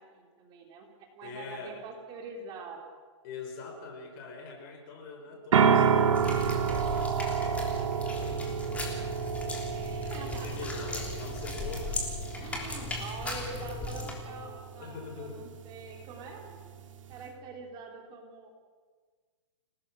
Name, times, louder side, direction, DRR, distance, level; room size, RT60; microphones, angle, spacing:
voice 1, 0.0-2.9 5.3-5.4 9.6-10.7 12.3-16.6 17.1-18.6, right 4 dB, 25° right, 2 dB, 3.6 m, -45 dB
voice 2, 1.2-1.8 3.2-8.7 10.2-12.0 13.8-14.4 14.8-15.5, left 3 dB, 40° left, 4 dB, 5.2 m, -43 dB
sound 1, 5.5-17.3, right 7 dB, 80° right, 2.6 m, -30 dB
sound 2, 6.1-14.1, left 3 dB, 10° left, 3.4 m, -37 dB
29.0 x 18.5 x 6.3 m, 1.5 s
hypercardioid pair, 155°, 16 cm